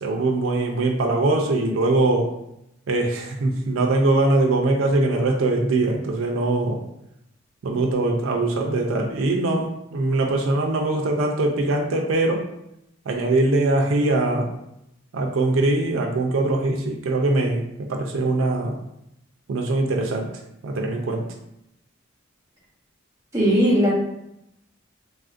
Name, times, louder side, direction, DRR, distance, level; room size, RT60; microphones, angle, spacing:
voice 1, 0.0-2.3 2.9-6.8 7.6-12.4 13.1-14.5 15.1-18.8 19.5-20.3 20.6-21.2, right 2 dB, 80° right, 1 dB, 0.4 m, -22 dB
voice 2, 23.3-23.9, equal, 15° right, -6 dB, 0.9 m, -18 dB
3.4 x 2.5 x 2.4 m, 0.81 s
head